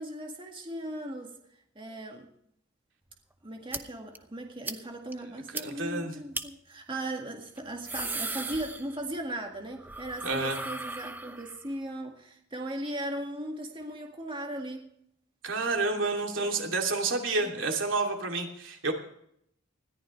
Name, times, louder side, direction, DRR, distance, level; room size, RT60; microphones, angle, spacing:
voice 1, 0.0-1.4 1.8-2.3 3.4-14.9 16.3-16.5 17.4-17.6, right 1 dB, 25° right, 1.9 m, -38 dB
sound 1, 3.7-3.8 4.1-4.2 4.6-4.8 5.1-5.2 5.5-5.6 6.3-6.4 7.6-9.2 9.5-11.7, right 3 dB, 10° right, 0.8 m, -37 dB
voice 2, 5.6-6.1 10.2-10.6 15.4-18.9, right 3 dB, 85° right, 2.8 m, -29 dB
20.5 x 14.5 x 3.2 m
head